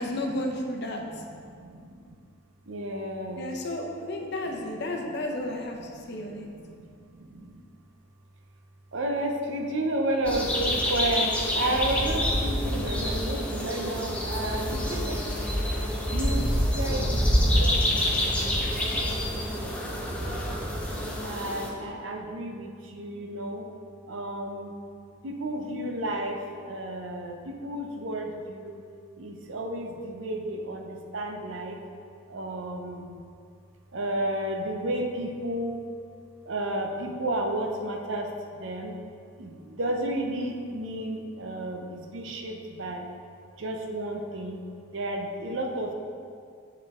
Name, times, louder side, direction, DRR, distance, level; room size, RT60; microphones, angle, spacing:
voice 1, 0.0-1.0 3.4-6.5, left 1 dB, 55° left, 2 dB, 0.7 m, -32 dB
voice 2, 1.2-2.1 2.7-3.5 4.5-4.6 5.5-7.6 8.9-18.6 19.6-20.3 21.2-23.7 24.1-24.7 25.2-28.8 29.2-31.8 32.3-33.2 33.9-35.8 36.5-38.3 38.6-39.0 39.4-43.1 43.6-44.6 44.9-45.9, right 1 dB, 65° right, 2 dB, 0.7 m, -32 dB
sound 1, 10.3-21.7, equal, 5° left, 0.6 m, -27 dB
7.4 x 4.4 x 3.6 m, 2.3 s
head